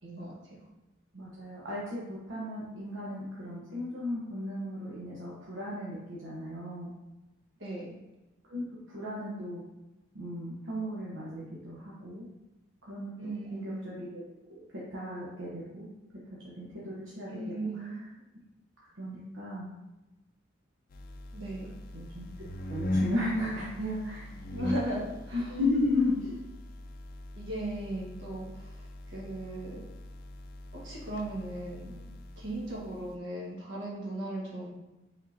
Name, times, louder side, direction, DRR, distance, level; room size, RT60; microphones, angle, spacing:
voice 1, 0.0-0.6 7.6-7.9 13.2-13.8 17.3-18.0 21.3-21.7 24.5-25.6 27.3-28.8 29.1-29.8 30.7-32.0 32.4-34.7, right 1 dB, 70° right, -4 dB, 1.4 m, -37 dB
voice 2, 1.1-6.9 8.4-9.6 10.1-12.2 12.9-14.2 14.5-15.9 16.4-18.1 19.0-19.7 21.9-22.2 22.7-24.3 25.3-26.4, left 1 dB, 85° right, -6 dB, 0.9 m, -35 dB
sound 1, 20.9-33.1, left 1 dB, 50° left, 0.4 m, -40 dB
5.0 x 3.6 x 2.7 m, 1.0 s
head